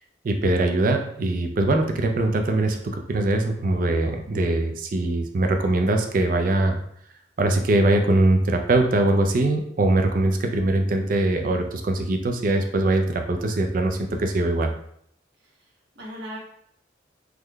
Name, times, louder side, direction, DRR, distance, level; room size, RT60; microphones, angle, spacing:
voice 1, 0.2-6.8 7.4-14.7, right 2 dB, 50° right, 4 dB, 0.4 m, -22 dB
voice 2, 15.4-16.4, equal, 70° right, -4 dB, 1.3 m, -39 dB
3.6 x 3.1 x 2.2 m, 0.68 s
head